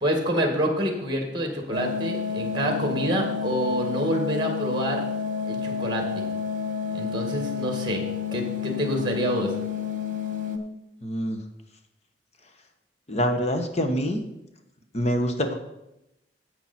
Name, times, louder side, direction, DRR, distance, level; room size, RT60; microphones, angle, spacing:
voice 1, 0.0-5.0 5.4-6.2 6.9-8.0 8.3-9.5, right 1 dB, 25° right, 3 dB, 2.0 m, -27 dB
sound 1, 1.7-10.6, left 6 dB, 50° right, 1.2 m, -30 dB
voice 2, 11.0-11.4 13.1-14.2 14.9-15.5, equal, 40° left, 5 dB, 1.2 m, -25 dB
10.5 x 8.0 x 4.4 m, 0.88 s
head